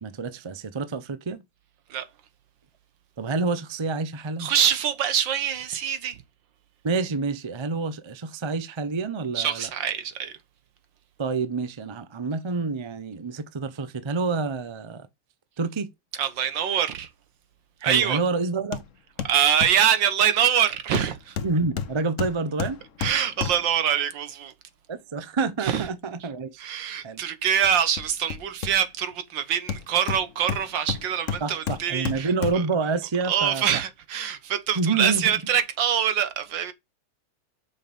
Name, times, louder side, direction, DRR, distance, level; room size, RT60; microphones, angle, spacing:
voice 1, 0.0-1.4 3.2-4.5 6.8-9.7 11.2-15.1 15.6-15.9 17.8-18.8 21.4-22.8 24.9-26.6 27.0-27.2 31.4-33.6 34.7-35.3, right 4 dB, 40° right, 0.3 m, -28 dB
voice 2, 4.4-6.1 9.3-10.3 16.2-17.1 17.8-18.2 19.2-21.4 23.0-24.5 25.6-25.8 26.6-32.3 33.3-36.7, right 9 dB, 85° right, 1.8 m, -24 dB
Hammer, 18.7-18.9 19.2-19.9 20.9-23.8 27.6-29.1 29.7-32.8 33.2-33.3, left 7 dB, 50° left, 1.1 m, -32 dB
6.6 x 5.6 x 5.2 m
omnidirectional pair, 2.0 m